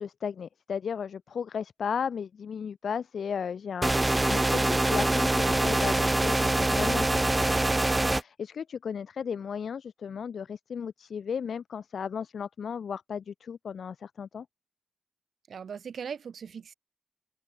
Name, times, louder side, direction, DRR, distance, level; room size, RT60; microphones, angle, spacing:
voice 1, 0.0-14.5, left 7 dB, 65° left, 0.9 m, -35 dB
sound 1, 3.8-8.2, right 2 dB, 15° right, 0.3 m, -24 dB
voice 2, 15.5-16.7, right 7 dB, 65° right, 2.4 m, -39 dB
open air
wide cardioid pair, 135°, 0 cm